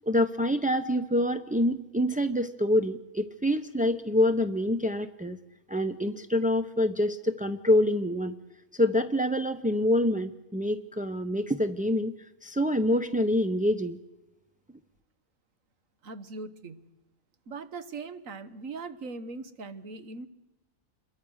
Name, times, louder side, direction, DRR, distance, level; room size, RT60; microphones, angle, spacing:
voice 1, 0.1-5.4 5.7-8.4 8.7-14.0, left 1 dB, 10° right, 7 dB, 0.4 m, -26 dB
voice 2, 16.0-16.9 17.5-20.3, right 4 dB, 75° right, 12 dB, 1.7 m, -40 dB
27.5 x 22.0 x 6.4 m, 1.0 s
omnidirectional pair, 1.4 m